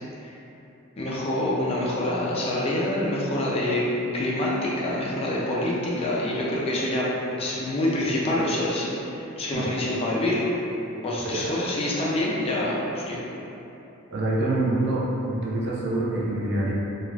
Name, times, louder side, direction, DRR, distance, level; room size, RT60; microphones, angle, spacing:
voice 1, 1.0-7.1 7.4-10.4 11.0-13.2, left 1 dB, 30° left, -5 dB, 0.4 m, -26 dB
voice 2, 14.1-16.7, right 2 dB, 55° right, -6 dB, 0.5 m, -26 dB
2.4 x 2.4 x 3.1 m, 2.9 s
head